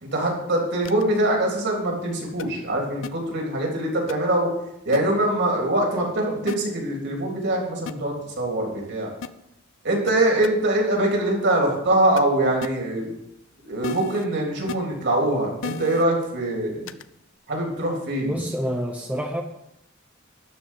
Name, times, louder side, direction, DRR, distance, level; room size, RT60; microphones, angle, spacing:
voice 1, 0.0-4.5 4.8-9.1 9.8-13.1 13.6-16.9 17.5-18.3, right 1 dB, 60° right, 0 dB, 3.5 m, -23 dB
sound 1, 0.8-1.0 2.4-2.5 3.0-3.1 4.1-4.2 4.9-5.0 6.5-6.6 7.9-8.0 9.2-9.3 10.1-10.2 10.4-10.5 12.2-12.3 12.6-12.7 13.8-14.2 14.7-14.8 15.6-16.0 16.9-17.0, left 6 dB, 65° left, 0.5 m, -32 dB
voice 2, 18.3-19.4, equal, 10° right, 0 dB, 0.8 m, -27 dB
12.0 x 4.8 x 8.4 m, 0.82 s
head